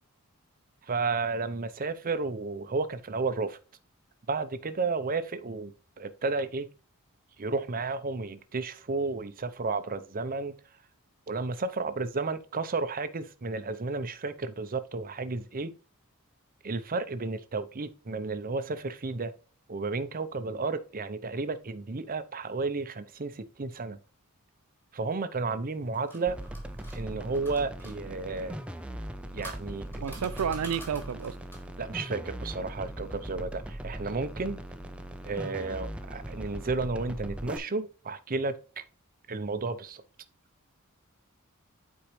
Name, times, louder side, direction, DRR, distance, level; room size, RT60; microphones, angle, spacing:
voice 1, 0.9-3.6 4.3-6.7 7.4-10.5 11.3-15.7 16.6-19.3 19.7-24.0 24.9-26.4 26.9-28.6 29.3-30.2 31.8-34.6 35.2-38.6 39.3-40.0, right 3 dB, 40° right, 0.7 m, -32 dB
sound 1, 25.7-28.0 28.9-31.8, right 1 dB, 10° left, 2.5 m, -48 dB
sound 2, 26.3-37.6, equal, 5° right, 0.6 m, -40 dB
voice 2, 30.0-31.4, right 7 dB, 80° right, 0.4 m, -31 dB
8.8 x 4.6 x 3.1 m
head